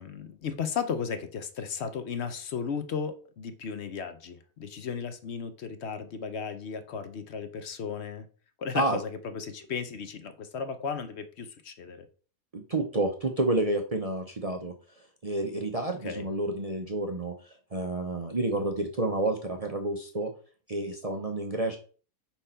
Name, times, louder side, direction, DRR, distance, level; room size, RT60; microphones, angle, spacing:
voice 1, 0.0-8.2 8.6-12.1 16.0-16.3, left 6 dB, 55° left, 9 dB, 0.8 m, -35 dB
voice 2, 12.5-14.7 15.2-20.3 20.7-21.8, right 2 dB, 40° right, 3 dB, 0.5 m, -29 dB
5.0 x 4.4 x 5.5 m, 0.39 s
omnidirectional pair, 1.7 m